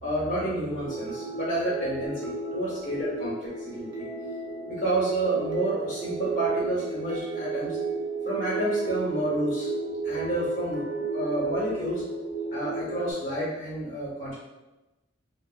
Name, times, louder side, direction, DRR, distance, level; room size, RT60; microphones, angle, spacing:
voice 1, 0.0-4.1 4.7-7.8 8.2-9.7 10.0-10.8 11.1-12.0 12.5-14.4, right 1 dB, 45° left, -7 dB, 1.3 m, -29 dB
sound 1, 0.8-13.1, right 3 dB, 75° right, 0.6 m, -33 dB
2.4 x 2.4 x 3.9 m, 1.1 s
head